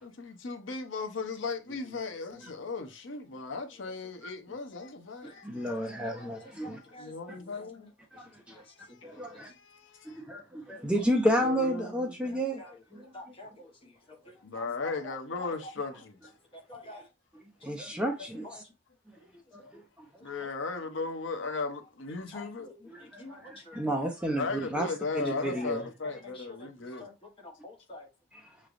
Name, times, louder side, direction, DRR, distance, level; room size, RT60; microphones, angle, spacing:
voice 1, 0.0-7.9 8.8-10.2 11.4-12.1 14.4-16.2 20.2-22.7 24.4-27.1, left 4 dB, 70° left, 0.7 m, -37 dB
voice 2, 5.4-6.8 7.3-7.4 8.1-8.6 9.0-9.5 10.0-12.6 12.9-13.3 17.4-18.6 19.5-20.1 22.9-24.9 25.1-25.8 28.3-28.5, equal, 5° right, 0.6 m, -32 dB
voice 3, 6.0-7.5 8.5-8.6 8.9-9.4 10.8-10.9 12.6-12.8 13.1-15.1 15.4-15.5 16.5-17.0 17.6-17.9 18.4-18.6 22.3-23.9 25.5-25.7 26.2-26.7 27.0-27.1 27.4-28.1, left 2 dB, 25° left, 1.1 m, -49 dB
5.9 x 3.2 x 2.5 m
head